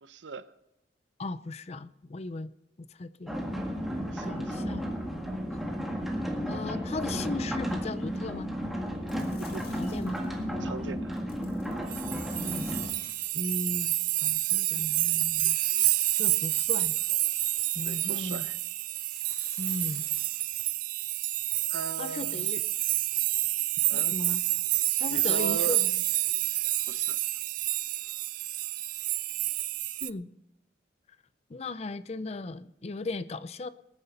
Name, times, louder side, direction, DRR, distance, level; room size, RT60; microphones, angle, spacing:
voice 1, 0.0-0.5 4.1-4.6 9.4-9.8 10.6-11.1 17.8-18.6 21.7-22.5 23.9-24.2 25.1-25.8 26.9-27.2, right 4 dB, 80° right, 0.7 m, -38 dB
voice 2, 1.2-2.5 2.8-3.4 4.2-4.9 5.4-5.6 6.5-8.5 9.7-10.2 12.4-12.8 13.3-14.0 14.2-15.6 16.1-16.9 17.7-18.5 19.6-20.1 22.0-22.6 23.9-24.4 25.0-25.9 30.0-30.3 31.5-33.7, left 3 dB, 35° left, 0.5 m, -37 dB
sound 1, 3.3-12.9, equal, ahead, 1.7 m, -33 dB
sound 2, 9.1-10.4 11.1-13.7 15.4-17.1 18.9-20.7, left 7 dB, 55° left, 2.1 m, -52 dB
sound 3, 11.9-30.1, right 16 dB, 45° right, 0.4 m, -29 dB
20.0 x 9.7 x 4.1 m
head